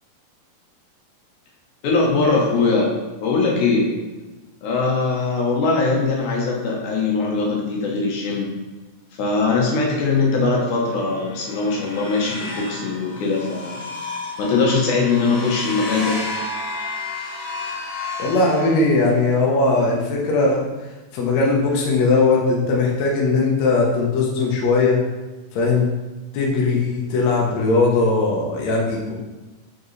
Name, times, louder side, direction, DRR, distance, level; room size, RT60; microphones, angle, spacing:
voice 1, 1.8-2.9 3.2-3.9 4.6-8.6 9.2-13.8 14.4-16.3, left 3 dB, 70° left, -2 dB, 1.9 m, -21 dB
sound 1, 11.0-19.3, left 3 dB, 50° left, 2.4 m, -32 dB
voice 2, 18.2-20.6 21.1-25.0 25.5-25.9 26.3-29.2, left 3 dB, 85° left, -3 dB, 1.5 m, -19 dB
6.0 x 4.9 x 3.2 m, 1.2 s
omnidirectional pair, 4.6 m